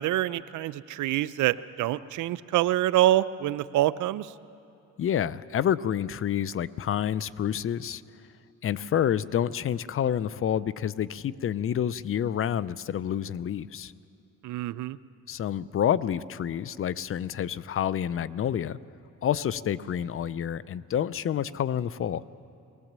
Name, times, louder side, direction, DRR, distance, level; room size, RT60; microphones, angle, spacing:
voice 1, 0.0-4.3 14.4-15.0, right 14 dB, 80° right, 16 dB, 0.6 m, -26 dB
voice 2, 5.0-8.0 8.6-13.9 15.3-18.8 19.2-22.2, left 9 dB, 45° left, 18 dB, 0.5 m, -28 dB
19.0 x 18.5 x 7.4 m, 2.6 s
cardioid pair, 90°, 30 cm